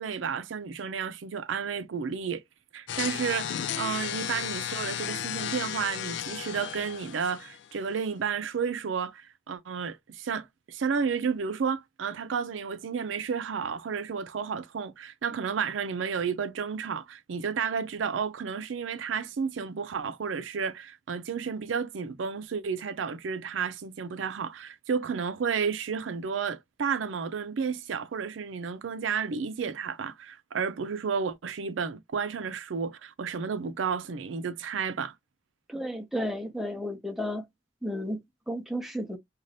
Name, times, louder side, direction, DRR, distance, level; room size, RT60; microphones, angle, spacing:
voice 1, 0.0-2.4 2.7-35.1, right 6 dB, 85° right, 0.4 m, -32 dB
sound 1, 2.9-7.9, left 10 dB, 70° left, 0.3 m, -34 dB
voice 2, 35.7-37.5 37.8-39.2, equal, ahead, 0.6 m, -33 dB
2.6 x 2.3 x 3.2 m
head